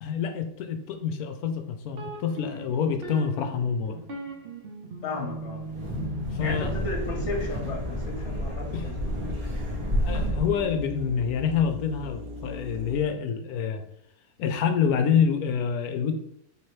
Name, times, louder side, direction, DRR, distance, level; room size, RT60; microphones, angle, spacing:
voice 1, 0.0-4.0 6.3-6.8 8.7-8.9 10.0-13.8 14.4-16.1, left 7 dB, 75° left, 7 dB, 1.1 m, -27 dB
sound 1, 2.0-11.7, equal, 50° right, 0.7 m, -39 dB
voice 2, 5.0-5.6 6.4-8.9, left 2 dB, 50° left, -1 dB, 1.4 m, -34 dB
Wind, 5.6-10.7, equal, 25° right, 1.0 m, -31 dB
sound 2, 6.4-13.0, left 2 dB, 75° right, 1.1 m, -40 dB
4.6 x 3.3 x 3.1 m, 0.73 s
omnidirectional pair, 1.7 m